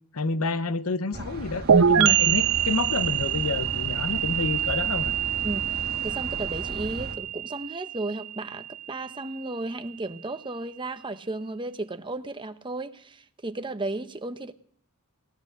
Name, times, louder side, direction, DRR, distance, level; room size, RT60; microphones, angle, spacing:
voice 1, 0.1-5.1, left 3 dB, 70° left, 0.8 m, -29 dB
sound 1, 1.1-7.2, right 1 dB, 45° right, 2.2 m, -37 dB
sound 2, 1.7-9.2, right 8 dB, 70° right, 0.6 m, -25 dB
voice 2, 5.4-14.5, right 2 dB, 20° right, 0.8 m, -34 dB
18.0 x 11.0 x 6.6 m
head